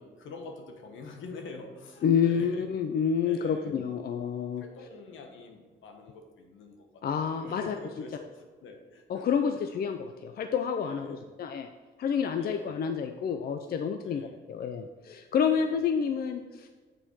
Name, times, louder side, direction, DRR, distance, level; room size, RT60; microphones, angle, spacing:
voice 1, 0.0-2.6 3.2-3.7 4.0-4.1 4.6-7.0 7.3-9.3 10.8-11.2 12.0-12.7 14.1-14.4 15.5-15.8, left 3 dB, 75° left, 4 dB, 1.2 m, -46 dB
voice 2, 2.0-4.6 7.0-7.7 9.1-11.7 12.0-16.7, left 7 dB, 50° left, 7 dB, 0.5 m, -29 dB
7.8 x 4.2 x 4.5 m, 1.4 s
cardioid pair, 90°, 20 cm